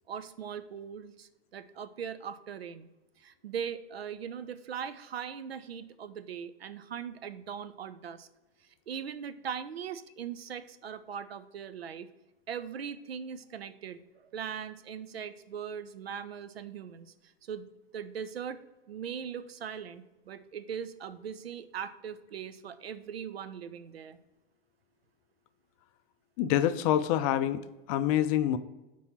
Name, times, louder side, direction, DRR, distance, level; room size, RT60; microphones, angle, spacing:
voice 1, 0.1-2.9 3.2-8.3 8.9-12.1 12.5-17.7 17.9-18.6 18.9-24.2, right 7 dB, 80° right, 12 dB, 0.5 m, -40 dB
voice 2, 26.4-27.6 27.9-28.6, left 11 dB, 40° left, 12 dB, 0.4 m, -26 dB
4.5 x 4.2 x 5.7 m, 1.1 s
figure-of-eight pair, 95°, 30 cm